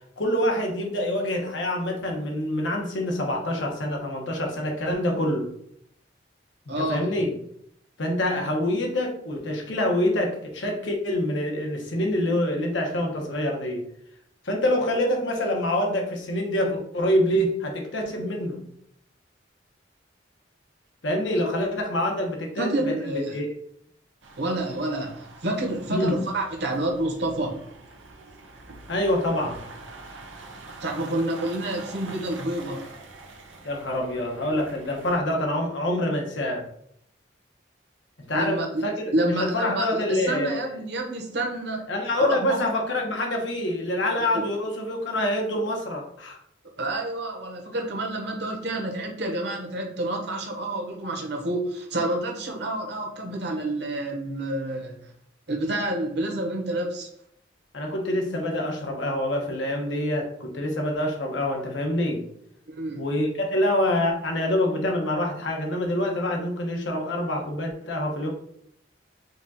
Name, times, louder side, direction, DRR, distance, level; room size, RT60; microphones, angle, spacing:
voice 1, 0.2-5.5 6.7-7.3 8.0-13.9 14.4-18.6 21.0-23.5 25.9-26.2 28.9-29.6 33.6-36.7 38.3-40.7 41.9-46.4 57.7-62.2 62.9-68.3, left 1 dB, 80° left, 1 dB, 1.1 m, -26 dB
voice 2, 6.7-7.1 22.6-23.3 24.4-27.6 30.8-32.8 38.3-38.8 39.1-41.8 42.2-42.6 44.3-44.4 46.8-54.9 55.5-57.1 62.7-63.1, right 1 dB, 60° right, 1 dB, 1.1 m, -28 dB
sound 1, 24.2-35.2, right 2 dB, 85° right, 0.9 m, -45 dB
5.2 x 2.4 x 4.1 m, 0.70 s
head